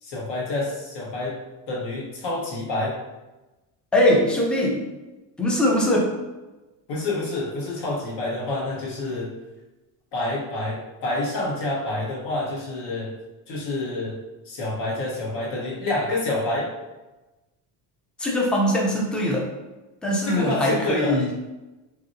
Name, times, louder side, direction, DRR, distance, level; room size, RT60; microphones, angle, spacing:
voice 1, 0.0-1.4 1.7-3.0 6.9-9.3 10.1-13.1 13.5-14.2 14.5-16.7 20.2-21.2, left 2 dB, 60° left, -3 dB, 1.2 m, -28 dB
voice 2, 3.9-4.8 5.4-6.1 18.2-19.5 20.0-21.3, left 1 dB, ahead, -2 dB, 0.4 m, -21 dB
3.1 x 2.7 x 2.6 m, 1.1 s
cardioid pair, 110°, 45 cm